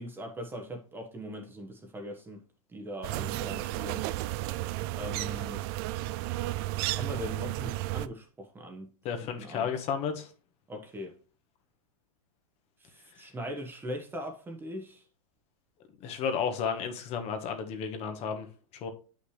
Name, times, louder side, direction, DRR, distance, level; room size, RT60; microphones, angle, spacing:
voice 1, 0.0-2.4 2.7-4.0 4.9-5.6 6.8-8.9 9.4-9.7 10.7-11.1 12.8-15.0, equal, 10° right, 1.2 m, -40 dB
sound 1, 3.0-8.1, right 17 dB, 45° right, 0.4 m, -33 dB
voice 2, 9.0-10.3 16.0-18.5 18.8-18.9, left 6 dB, 35° left, 1.3 m, -32 dB
8.2 x 5.8 x 3.2 m
supercardioid pair, 140°, 18 cm